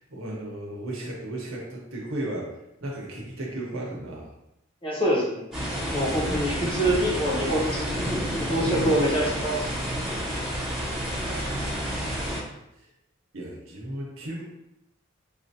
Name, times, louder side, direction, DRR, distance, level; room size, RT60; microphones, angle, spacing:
voice 1, 0.0-2.5 2.8-4.3 6.2-6.6 11.2-12.3 13.3-14.4, right 1 dB, 85° right, -2 dB, 1.0 m, -35 dB
voice 2, 4.8-5.4 5.9-8.0 8.4-9.8, right 1 dB, 25° left, -4 dB, 0.9 m, -25 dB
sound 1, 5.5-12.4, equal, ahead, 1.0 m, -29 dB
4.8 x 2.5 x 2.7 m, 0.86 s
head